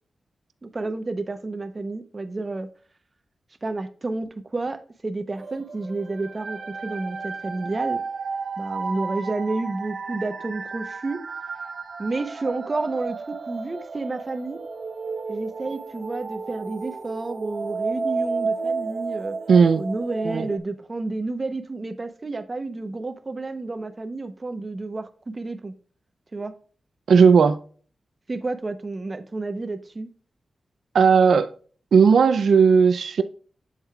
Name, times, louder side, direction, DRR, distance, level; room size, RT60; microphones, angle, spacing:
voice 1, 0.6-2.7 3.6-8.0 8.6-11.2 12.0-14.6 15.3-19.4 19.8-25.7 26.3-26.5 28.3-30.1, right 3 dB, 30° right, 0.8 m, -30 dB
sound 1, 5.4-20.6, right 4 dB, 55° right, 0.9 m, -32 dB
voice 2, 19.5-19.8 20.3-20.5 27.1-27.6 30.9-31.5 31.9-33.2, right 6 dB, 85° right, 0.5 m, -16 dB
7.9 x 7.4 x 2.3 m
wide cardioid pair, 155°, 0 cm